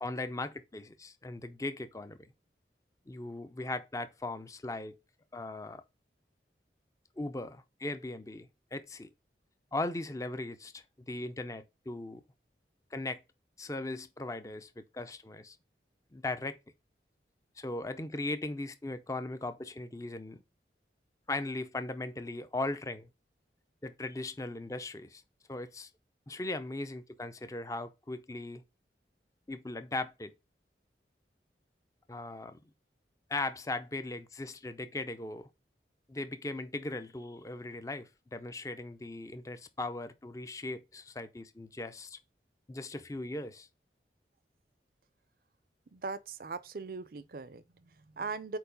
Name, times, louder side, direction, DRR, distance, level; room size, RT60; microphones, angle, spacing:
voice 1, 0.0-2.3 3.1-5.0 5.3-5.8 7.2-9.1 9.7-12.2 12.9-13.2 13.6-15.6 16.1-16.6 17.6-20.4 21.3-23.1 23.8-25.2 25.5-25.9 26.3-28.6 29.5-30.3 32.1-32.6 33.3-35.5 36.1-42.2 42.7-43.7, left 2 dB, 20° left, 0.5 m, -38 dB
voice 2, 45.9-48.6, right 4 dB, 55° right, 0.5 m, -40 dB
4.6 x 4.5 x 5.1 m
head